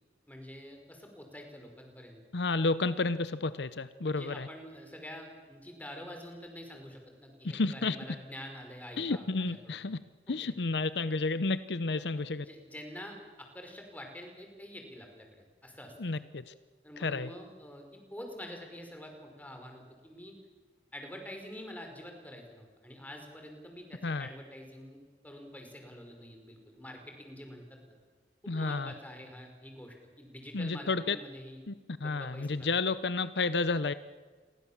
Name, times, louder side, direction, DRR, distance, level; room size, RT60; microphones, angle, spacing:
voice 1, 0.3-2.2 4.0-9.9 10.4-10.5 11.9-12.0 12.4-16.2 16.8-20.3 20.9-27.8 28.4-31.6 32.0-32.7, left 1 dB, 10° left, 3 dB, 5.0 m, -47 dB
voice 2, 2.3-4.5 7.5-8.0 9.0-10.0 10.3-12.4 16.0-16.5 17.0-17.3 24.0-24.3 28.5-28.9 30.5-31.2 31.7-31.8 32.0-33.9, left 3 dB, 70° left, 14 dB, 0.8 m, -31 dB
28.5 x 22.5 x 7.3 m, 1.4 s
head